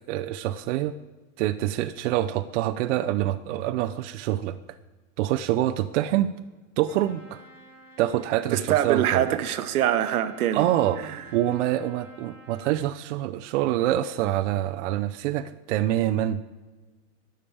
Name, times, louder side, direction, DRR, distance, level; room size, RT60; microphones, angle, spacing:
voice 1, 0.1-0.9 1.4-4.6 5.2-6.3 6.8-7.4 8.0-9.4 10.5-16.4, right 13 dB, 55° right, 0.6 m, -26 dB
Trumpet, 6.8-12.9, right 1 dB, 60° left, 4.2 m, -50 dB
voice 2, 8.5-10.7 11.0-11.2, right 11 dB, 80° right, 1.0 m, -24 dB
12.5 x 5.1 x 8.6 m
supercardioid pair, 140°, 43 cm